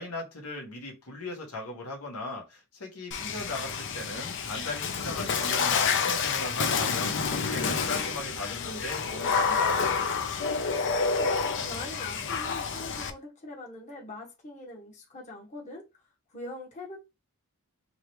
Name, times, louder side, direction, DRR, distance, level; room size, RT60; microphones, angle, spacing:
voice 1, 0.0-9.8, left 2 dB, 75° left, 1.4 m, -38 dB
Water / Splash splatter, 3.1-13.1, left 5 dB, 55° left, 0.6 m, -29 dB
voice 2, 11.1-15.9 16.3-17.0, left 2 dB, 35° left, 1.2 m, -42 dB
3.8 x 3.2 x 3.1 m
head